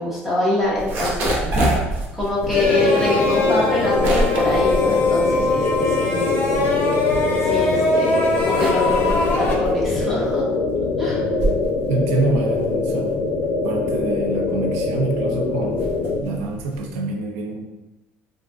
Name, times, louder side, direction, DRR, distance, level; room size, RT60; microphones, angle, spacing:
voice 1, 0.0-1.8 2.1-6.5 7.4-10.5 11.0-11.2, left 2 dB, 5° right, -7 dB, 0.6 m, -25 dB
sound 1, 0.6-5.9 6.3-7.7 8.2-17.0, right 1 dB, 45° right, 0.7 m, -27 dB
sound 2, 2.5-16.2, left 3 dB, 90° left, 0.5 m, -23 dB
sound 3, 2.5-9.5, left 2 dB, 40° left, 0.6 m, -22 dB
voice 2, 11.9-13.1 13.6-15.9 16.2-17.7, right 3 dB, 85° right, 2 dB, 0.5 m, -25 dB
3.6 x 2.5 x 2.3 m, 1.0 s
cardioid pair, 165°, 5 cm